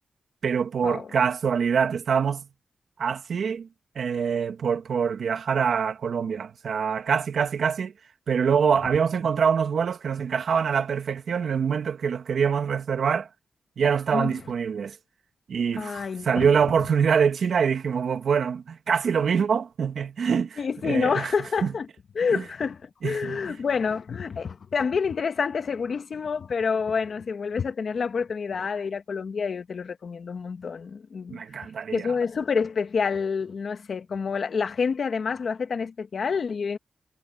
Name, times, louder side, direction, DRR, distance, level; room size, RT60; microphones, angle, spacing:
voice 1, 0.4-2.5 3.0-3.7 3.9-7.9 8.3-13.3 13.8-15.0 15.5-21.3 21.6-21.7 22.3-22.4 23.0-23.5 31.3-32.1, right 6 dB, 75° right, 2.5 m, -25 dB
voice 2, 15.8-16.5 20.6-21.9 22.1-31.7 31.9-36.8, left 5 dB, 60° left, 1.9 m, -28 dB
wide cardioid pair, 105°, 0 cm